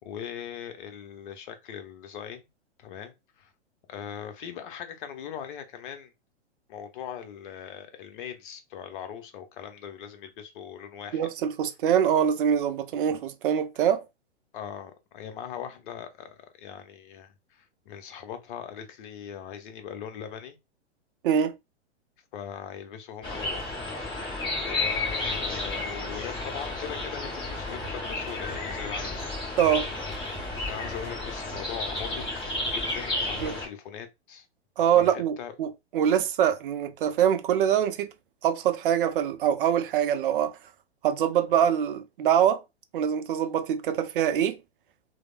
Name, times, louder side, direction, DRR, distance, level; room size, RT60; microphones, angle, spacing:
voice 1, 0.0-2.5 2.8-3.5 3.9-6.1 6.7-11.3 14.5-20.6 22.3-23.7 24.5-29.3 30.7-34.5 35.0-35.5, left 8 dB, 45° left, 0.8 m, -40 dB
voice 2, 11.1-14.0 21.2-21.6 29.6-29.9 33.4-33.5 34.8-38.1 38.4-40.6 41.0-42.6 42.9-44.6, right 9 dB, 50° right, 0.5 m, -24 dB
sound 1, 23.2-33.7, left 2 dB, 15° left, 1.0 m, -32 dB
sound 2, 27.6-33.4, right 2 dB, 20° right, 0.7 m, -47 dB
3.2 x 2.1 x 2.4 m
figure-of-eight pair, 110°, 34 cm